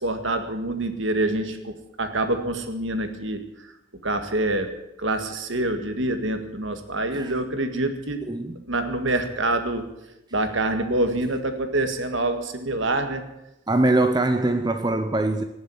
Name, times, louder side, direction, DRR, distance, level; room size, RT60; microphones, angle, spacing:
voice 1, 0.0-3.4 4.0-4.7 5.0-9.9 10.3-13.2, right 2 dB, 60° right, 7 dB, 1.9 m, -26 dB
voice 2, 13.7-15.4, right 2 dB, 20° right, 7 dB, 0.7 m, -22 dB
18.5 x 7.3 x 9.5 m, 0.90 s
head